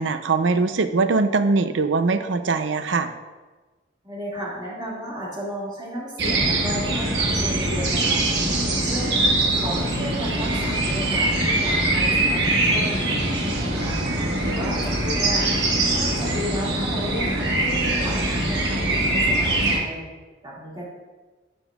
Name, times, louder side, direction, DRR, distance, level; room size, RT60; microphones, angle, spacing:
voice 1, 0.0-3.1, right 4 dB, 90° right, 10 dB, 0.5 m, -21 dB
voice 2, 4.0-8.2 8.7-9.2 9.5-15.5 15.9-20.0 20.4-20.8, equal, 25° right, -7 dB, 2.1 m, -34 dB
sound 1, 6.2-19.8, right 2 dB, 70° right, 1.2 m, -22 dB
12.0 x 5.4 x 2.4 m, 1.3 s
head